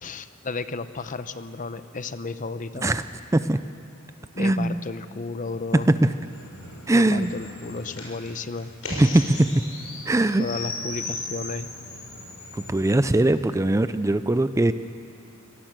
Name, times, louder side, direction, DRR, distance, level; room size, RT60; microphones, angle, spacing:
voice 1, 0.0-3.0 4.3-5.9 6.9-8.7 10.4-11.7, left 3 dB, 40° left, 12 dB, 0.7 m, -33 dB
voice 2, 4.4-4.8 5.7-6.1 6.9-7.3 8.9-9.6 10.1-10.5 12.5-14.7, right 1 dB, 15° right, 12 dB, 0.4 m, -21 dB
sound 1, 5.6-13.0, left 3 dB, 80° left, 5.7 m, -38 dB
23.5 x 18.0 x 7.6 m, 2.5 s
head